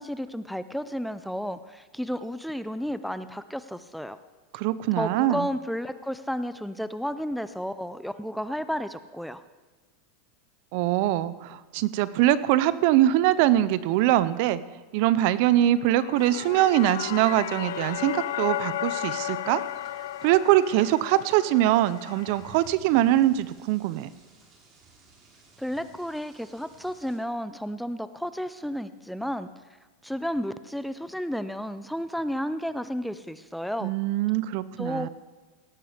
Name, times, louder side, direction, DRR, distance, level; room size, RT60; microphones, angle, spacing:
voice 1, 0.0-4.2 5.0-9.4 25.6-29.5 30.0-33.9 34.8-35.1, equal, ahead, 13 dB, 0.5 m, -32 dB
voice 2, 4.5-5.5 10.7-14.6 14.9-19.6 20.2-24.1 33.8-35.1, right 13 dB, 60° right, 17 dB, 0.6 m, -23 dB
sound 1, 15.8-22.7, left 13 dB, 80° left, 0.6 m, -34 dB
sound 2, 16.1-27.2, right 3 dB, 30° right, 3.1 m, -56 dB
17.5 x 8.8 x 5.0 m, 1.3 s
supercardioid pair, 130°, 0 cm